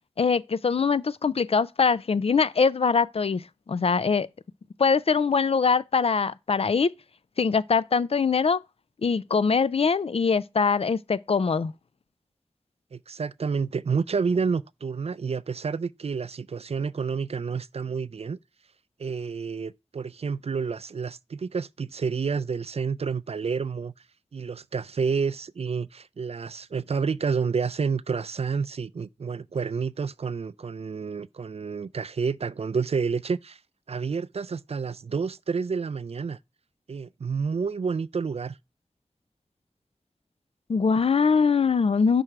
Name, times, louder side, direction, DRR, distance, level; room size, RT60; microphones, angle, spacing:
voice 1, 0.2-4.3 4.8-6.9 7.4-8.6 9.0-11.7 40.7-42.2, left 5 dB, 55° left, 0.4 m, -23 dB
voice 2, 12.9-18.4 19.0-23.9 24.3-33.6 33.9-36.4 36.9-38.6, right 5 dB, 60° right, 0.4 m, -29 dB
6.1 x 3.3 x 5.8 m
wide cardioid pair, 55°, 12 cm